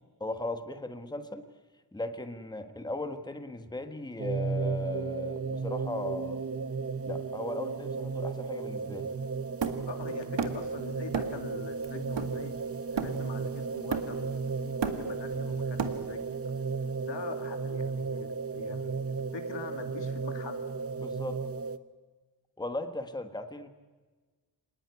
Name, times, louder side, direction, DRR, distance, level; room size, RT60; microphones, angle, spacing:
voice 1, 0.2-1.4 1.9-6.4 7.0-9.1 21.0-21.4 22.6-23.7, left 1 dB, 10° left, 7 dB, 1.5 m, -37 dB
sound 1, 4.2-21.8, right 4 dB, 35° right, 0.9 m, -34 dB
Hammer, 9.6-10.7 11.1-11.5 11.8-13.4 13.9-14.4 14.6-16.3, right 6 dB, 85° right, 2.0 m, -34 dB
voice 2, 9.9-12.6 12.9-14.3 14.6-16.4 17.0-20.6, left 6 dB, 85° left, 6 dB, 2.8 m, -43 dB
26.0 x 19.5 x 9.5 m, 1.3 s
wide cardioid pair, 140°, 42 cm